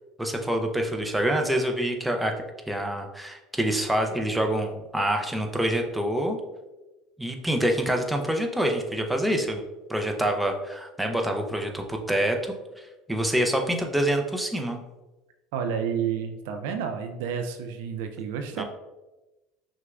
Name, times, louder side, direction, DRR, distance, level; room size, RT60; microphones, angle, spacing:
voice 1, 0.2-2.3 2.7-6.4 7.2-9.6 9.9-14.8 18.6-18.7, right 1 dB, 5° right, 3 dB, 0.6 m, -26 dB
voice 2, 15.5-18.6, right 7 dB, 70° right, 6 dB, 0.3 m, -30 dB
5.7 x 2.2 x 2.4 m, 1.1 s
hypercardioid pair, 75°, 0 cm